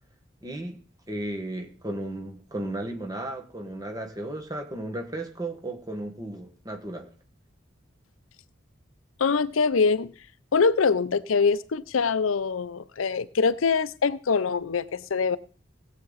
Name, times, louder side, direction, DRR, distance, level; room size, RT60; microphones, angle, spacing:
voice 1, 0.4-0.8 1.1-7.1, right 1 dB, 20° right, 4 dB, 1.6 m, -34 dB
voice 2, 9.2-10.1 10.5-15.4, left 5 dB, 85° left, 16 dB, 0.6 m, -24 dB
17.0 x 8.0 x 4.0 m, 0.40 s
head